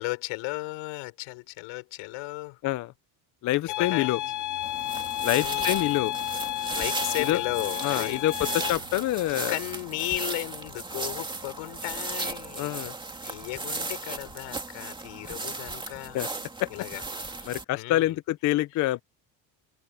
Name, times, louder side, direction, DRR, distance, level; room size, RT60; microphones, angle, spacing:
voice 1, 0.0-2.6 3.6-4.1 5.3-5.9 6.7-8.9 9.5-12.9 13.2-16.2 16.7-17.0 17.3-18.2 18.7-18.9, left 24 dB, 90° left, 5.0 m, -35 dB
voice 2, 3.4-4.2 5.2-6.1 7.3-7.4 7.8-9.6 12.6-12.9 16.1-16.3 16.6-16.7 17.5-19.0, left 16 dB, 40° left, 0.5 m, -26 dB
sound 1, 3.7-8.7, left 15 dB, 55° left, 1.6 m, -31 dB
sound 2, 3.8-15.3, right 12 dB, 45° right, 4.5 m, -54 dB
sound 3, 4.6-17.6, right 3 dB, 10° right, 2.6 m, -36 dB
cardioid pair, 160°, 47 cm